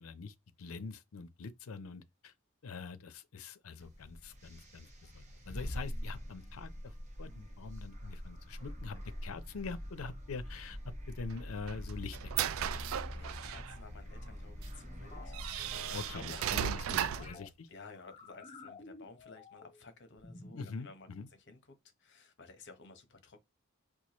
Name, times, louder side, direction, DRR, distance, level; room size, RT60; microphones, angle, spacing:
voice 1, 0.0-2.3 2.6-10.8 11.1-12.8 15.9-17.7 20.5-21.3, left 4 dB, 85° left, 0.5 m, -45 dB
sound 1, 3.8-17.3, equal, 35° right, 1.3 m, -44 dB
sound 2, 11.3-13.8 14.6-14.7 15.3-17.4, right 10 dB, 70° right, 0.3 m, -36 dB
voice 2, 13.1-17.2 17.7-21.1 21.5-21.6 22.0-23.5, left 3 dB, 60° left, 0.9 m, -54 dB
sound 3, 15.1-17.5 18.0-19.8 20.2-20.7, left 3 dB, 30° left, 0.6 m, -51 dB
4.5 x 2.3 x 2.9 m
head